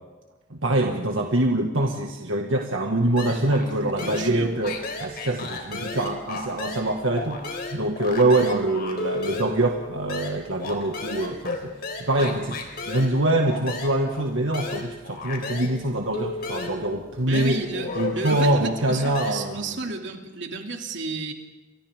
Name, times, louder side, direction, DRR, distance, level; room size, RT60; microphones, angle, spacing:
voice 1, 0.5-17.6 18.0-19.8, right 1 dB, 80° right, 2 dB, 1.8 m, -24 dB
sound 1, 3.2-3.7 4.0-6.9 7.2-15.8 16.1-19.3, left 3 dB, 50° left, 3.8 m, -34 dB
voice 2, 3.8-4.6 17.3-21.3, right 3 dB, 65° right, 3 dB, 2.7 m, -32 dB
29.5 x 24.0 x 3.7 m, 1.2 s
head